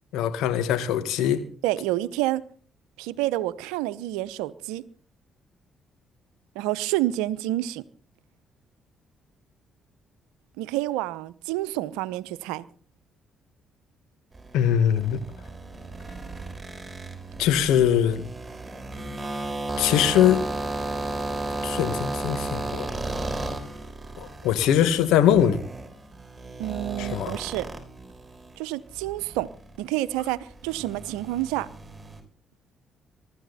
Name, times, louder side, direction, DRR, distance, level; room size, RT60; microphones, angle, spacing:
voice 1, 0.1-1.4 14.5-15.2 17.4-18.2 19.8-20.4 21.6-22.9 24.2-25.6 27.0-27.3, left 10 dB, 75° left, 11 dB, 1.9 m, -22 dB
voice 2, 1.6-2.4 3.0-4.8 6.5-7.8 10.6-12.6 26.6-27.7 28.6-29.5 29.8-31.7, right 15 dB, 85° right, 16 dB, 0.8 m, -28 dB
sound 1, 14.3-28.6 28.9-32.2, right 2 dB, 20° right, 6.4 m, -34 dB
23.5 x 13.0 x 4.3 m, 0.43 s
hypercardioid pair, 50°, 0 cm